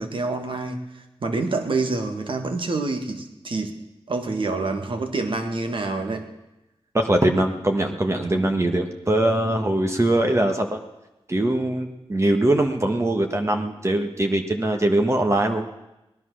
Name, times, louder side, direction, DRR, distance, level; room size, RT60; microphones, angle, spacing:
voice 1, 0.0-3.8 4.1-6.3, right 3 dB, 60° right, 6 dB, 1.9 m, -27 dB
voice 2, 6.9-10.8 11.3-15.6, right 1 dB, 30° right, 4 dB, 1.4 m, -22 dB
18.5 x 11.0 x 6.3 m, 0.97 s
wide cardioid pair, 70°, 10 cm